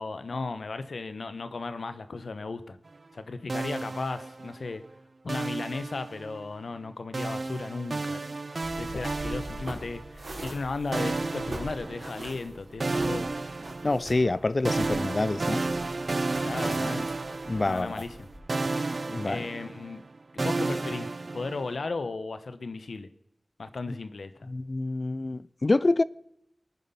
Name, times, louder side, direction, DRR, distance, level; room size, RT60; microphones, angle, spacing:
voice 1, 0.0-2.8 3.1-4.8 5.2-8.4 8.8-13.3 16.4-17.1 17.6-18.1 19.3-20.0 20.3-21.1 21.3-23.1 23.6-24.5, left 3 dB, 90° left, 1.1 m, -35 dB
sound 1, 3.5-4.7 5.3-6.5 7.1-10.2 10.9-12.5 12.8-18.2 18.5-21.8, right 3 dB, 60° right, 0.5 m, -32 dB
sound 2, 8.6-18.4, right 1 dB, 75° right, 4.6 m, -43 dB
voice 2, 13.8-15.6 17.5-18.0 19.1-19.5 24.4-26.0, left 2 dB, 50° left, 0.5 m, -27 dB
20.0 x 9.4 x 5.9 m
wide cardioid pair, 50°, 0 cm